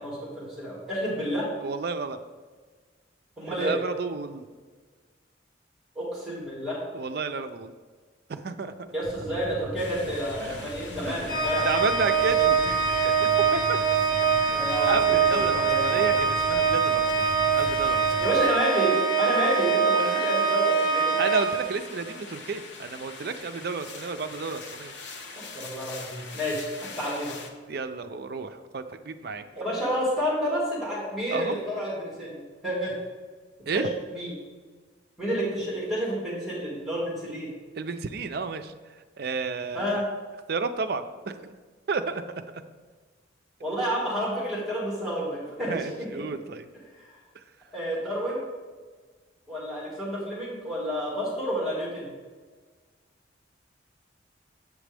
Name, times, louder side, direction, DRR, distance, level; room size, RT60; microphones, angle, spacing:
voice 1, 0.0-1.5 3.4-3.8 6.0-6.8 8.9-11.7 14.5-16.2 18.2-21.1 25.4-27.4 29.5-33.0 33.7-33.8 34.1-34.3 35.2-37.5 39.7-40.0 43.6-46.2 46.9-47.2 47.7-48.4 49.5-52.1, equal, ahead, -6 dB, 2.1 m, -30 dB
voice 2, 1.6-2.2 3.5-4.5 6.9-7.7 8.3-8.7 10.4-10.7 11.1-11.4 11.6-13.8 14.4-17.3 17.5-18.2 20.0-20.3 21.2-24.9 27.7-29.4 31.3-31.6 33.7-33.9 37.8-38.7 39.2-40.0 40.5-41.5 41.9-42.6 45.7-46.7, right 4 dB, 55° right, 9 dB, 0.4 m, -32 dB
sound 1, 9.0-18.4, equal, 35° right, 1.0 m, -40 dB
sound 2, 9.8-27.5, left 4 dB, 65° left, 0.8 m, -43 dB
Organ, 11.3-22.1, right 6 dB, 50° left, 1.2 m, -24 dB
8.1 x 6.1 x 3.4 m, 1.5 s
head